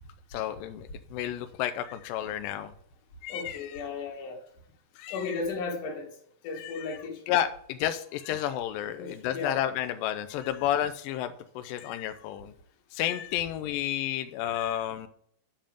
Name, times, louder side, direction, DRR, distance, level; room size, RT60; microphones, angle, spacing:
voice 1, 0.3-2.7 3.2-3.7 5.0-5.4 6.5-7.0 7.3-12.5 12.9-15.1, left 11 dB, 85° left, 2.0 m, -31 dB
voice 2, 3.3-4.4 5.1-6.1 6.4-7.2 9.0-9.6, left 4 dB, 60° left, 2.9 m, -35 dB
8.7 x 5.5 x 5.2 m
omnidirectional pair, 4.5 m